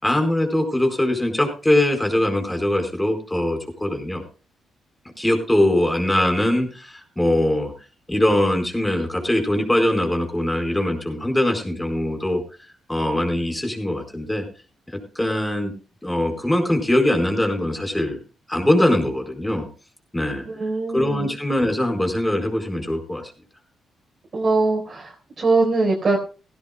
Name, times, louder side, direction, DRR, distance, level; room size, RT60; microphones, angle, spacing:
voice 1, 0.0-4.2 5.2-7.7 8.1-12.4 12.9-14.4 15.1-15.7 16.0-18.2 18.5-19.7 20.1-20.4 20.9-23.2, left 1 dB, 10° left, 3 dB, 4.4 m, -22 dB
voice 2, 20.4-21.4 24.3-26.2, right 3 dB, 40° right, -2 dB, 4.1 m, -22 dB
17.5 x 16.5 x 2.2 m, 0.35 s
cardioid pair, 115°, 0 cm